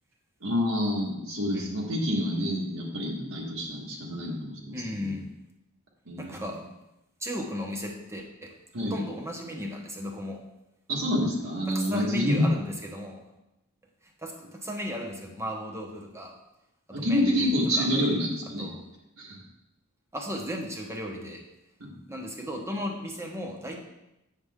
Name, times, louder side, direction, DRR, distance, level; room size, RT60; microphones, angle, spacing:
voice 1, 0.4-5.2 6.1-6.4 8.7-8.9 10.9-12.5 16.9-18.7 19.2-19.4 21.8-22.0, left 1 dB, 70° right, -3 dB, 1.6 m, -28 dB
voice 2, 4.7-5.3 6.2-6.6 7.2-8.5 8.9-10.4 11.7-13.2 14.2-16.3 16.9-17.9 18.6-18.8 20.1-21.4 22.1-23.8, left 1 dB, 15° right, 1 dB, 1.0 m, -35 dB
8.3 x 6.8 x 3.6 m, 0.90 s
head